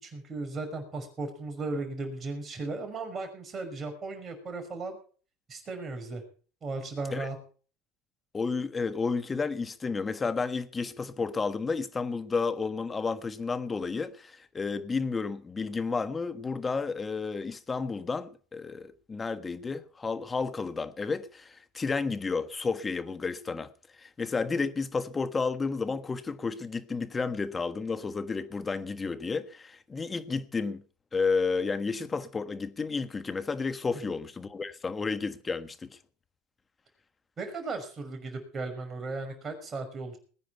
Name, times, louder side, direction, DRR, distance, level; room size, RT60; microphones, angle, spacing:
voice 1, 0.0-5.0 5.5-6.2 6.6-7.4 37.4-40.2, right 3 dB, 30° right, 5.8 m, -36 dB
voice 2, 8.3-23.7 24.0-30.8 31.1-35.9, left 4 dB, 20° left, 1.4 m, -31 dB
20.5 x 9.9 x 4.6 m
hypercardioid pair, 95°, 0 cm